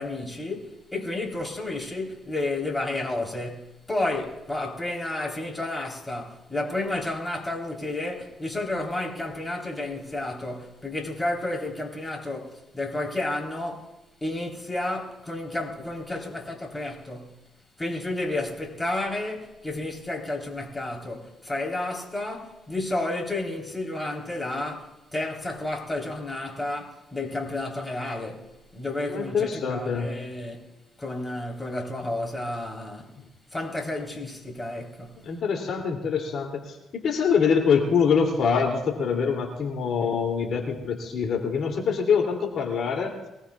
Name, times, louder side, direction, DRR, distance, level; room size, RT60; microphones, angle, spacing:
voice 1, 0.0-13.9 14.2-17.4 17.8-30.7 31.0-33.1 33.5-35.2, left 2 dB, 15° left, 3.8 m, -31 dB
voice 2, 29.1-30.1 35.2-43.1, left 6 dB, 65° left, 2.8 m, -24 dB
24.0 x 18.5 x 2.4 m
cardioid pair, 80°, 0 cm